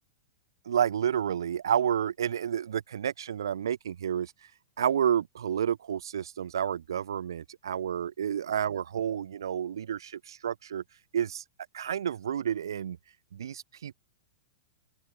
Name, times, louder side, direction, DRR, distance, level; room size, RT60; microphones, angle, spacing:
voice 1, 0.7-4.3 4.8-10.8 11.1-11.4 11.7-13.0 13.3-13.9, right 9 dB, 85° right, 2.4 m, -30 dB
open air
hypercardioid pair, 155°, 2 cm